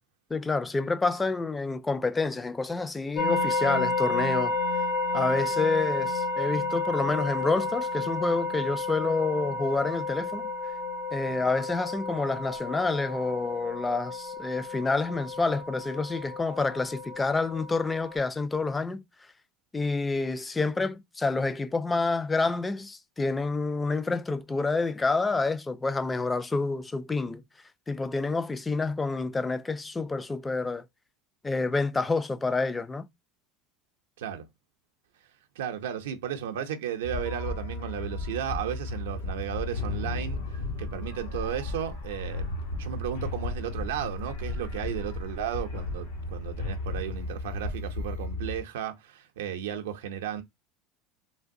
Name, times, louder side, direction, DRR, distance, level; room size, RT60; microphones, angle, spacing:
voice 1, 0.3-4.5 5.1-10.5 11.1-19.0 19.7-27.4 27.9-30.8 31.4-33.1, left 3 dB, 15° left, 0.4 m, -28 dB
sound 1, 3.2-18.2, left 2 dB, 65° left, 1.0 m, -31 dB
voice 2, 35.6-40.4 40.8-42.5 42.8-50.4, right 9 dB, 80° right, 0.5 m, -34 dB
sound 2, 37.0-48.6, left 2 dB, 85° left, 0.9 m, -34 dB
3.3 x 2.2 x 2.6 m
hypercardioid pair, 85°, 0 cm